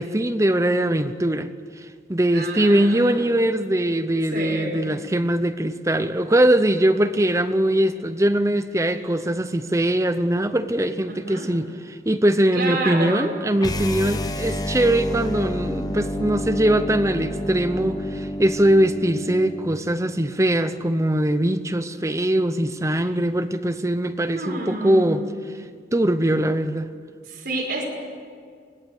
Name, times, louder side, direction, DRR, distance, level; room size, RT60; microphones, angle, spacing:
voice 1, 0.0-1.5 1.8-1.9 2.1-25.2 25.9-26.9, right 1 dB, 15° right, 10 dB, 0.8 m, -21 dB
voice 2, 2.3-3.3 4.3-4.8 11.1-11.5 12.5-13.4 22.9-23.1 24.3-25.2 27.3-27.8, right 2 dB, 60° right, -2 dB, 5.5 m, -29 dB
sound 1, 13.6-19.8, left 1 dB, 20° left, 0.9 m, -29 dB
25.0 x 18.5 x 8.1 m, 2.2 s
head